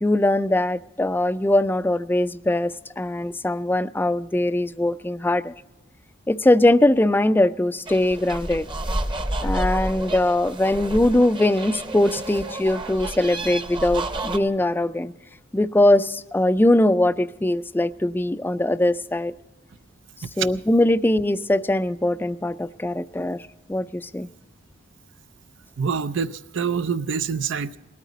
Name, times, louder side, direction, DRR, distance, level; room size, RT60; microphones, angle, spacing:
voice 1, 0.0-5.5 6.3-8.7 9.4-15.1 15.5-19.3 20.4-23.4 23.7-24.3, left 1 dB, 10° left, 0.4 m, -21 dB
sound 1, 7.9-14.4, right 1 dB, 25° right, 0.8 m, -30 dB
voice 2, 25.8-27.8, right 6 dB, 75° right, 0.5 m, -26 dB
19.0 x 13.0 x 4.1 m
head